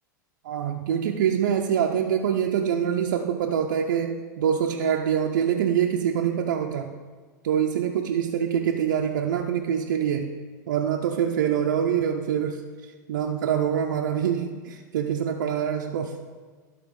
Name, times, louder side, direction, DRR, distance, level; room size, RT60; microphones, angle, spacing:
voice 1, 0.4-7.0 7.4-10.3 10.7-12.6 13.1-16.1, right 8 dB, 80° right, 2 dB, 0.6 m, -25 dB
12.0 x 4.1 x 5.2 m, 1.5 s
hypercardioid pair, 105°, 10 cm